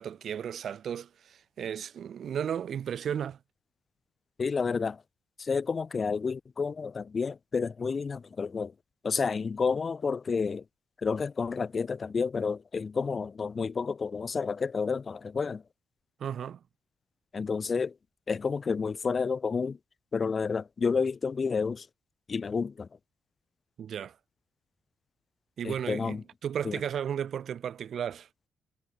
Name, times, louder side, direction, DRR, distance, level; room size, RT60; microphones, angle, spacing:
voice 1, 0.0-3.4 16.2-16.6 23.8-24.2 25.6-28.3, right 8 dB, 60° right, 0.4 m, -34 dB
voice 2, 4.4-5.0 5.4-8.7 9.0-10.6 11.0-15.6 17.3-17.9 18.3-19.8 20.1-21.9 22.3-22.9 25.6-26.2 26.6-26.8, left 5 dB, 35° left, 0.5 m, -30 dB
cardioid pair, 90°, 0 cm